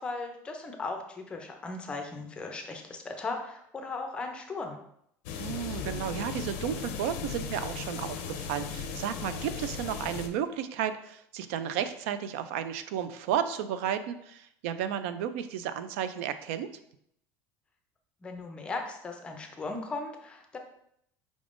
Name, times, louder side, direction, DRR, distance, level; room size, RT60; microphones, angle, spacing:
voice 1, 0.0-4.8 18.2-20.6, left 3 dB, 15° left, 4 dB, 0.4 m, -37 dB
sound 1, 5.3-10.3, left 6 dB, 75° left, 0.5 m, -37 dB
voice 2, 5.4-16.7, right 9 dB, 80° right, 11 dB, 0.3 m, -33 dB
4.9 x 3.6 x 2.5 m, 0.73 s
cardioid pair, 170°, 7 cm